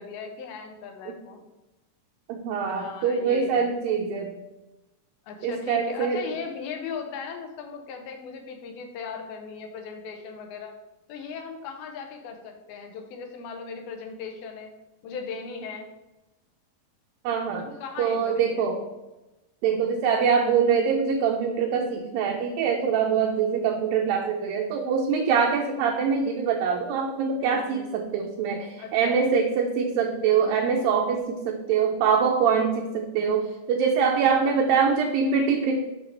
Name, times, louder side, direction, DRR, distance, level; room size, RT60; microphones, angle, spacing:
voice 1, 0.0-1.5 2.7-3.7 5.3-10.7 11.1-14.7 15.0-15.9 17.6-18.7 27.4-27.9 28.8-29.2 34.1-34.6, left 5 dB, 75° left, 4 dB, 2.6 m, -38 dB
voice 2, 2.3-4.3 5.4-6.2 17.2-17.7 18.0-18.8 19.6-35.8, right 6 dB, 80° right, 2 dB, 2.2 m, -24 dB
7.4 x 6.0 x 3.4 m, 1.0 s
omnidirectional pair, 4.6 m